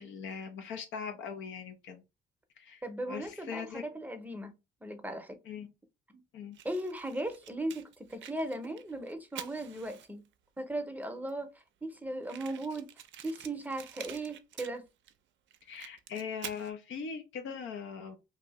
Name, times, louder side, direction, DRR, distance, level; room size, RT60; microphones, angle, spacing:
voice 1, 0.0-2.0 2.6-3.8 5.5-5.7 6.3-6.6 15.7-18.2, left 6 dB, 75° left, 0.6 m, -40 dB
voice 2, 2.8-4.5 4.8-5.4 6.1-6.2 6.6-10.2 10.6-11.5 11.8-12.9 13.2-14.8, right 1 dB, 10° right, 0.6 m, -37 dB
Fire, 6.5-10.3 11.0-11.1 11.3-11.4 11.6-11.7 12.2-15.1 15.5-16.7, right 10 dB, 70° right, 0.4 m, -48 dB
2.7 x 2.6 x 2.9 m
cardioid pair, 90°, 20 cm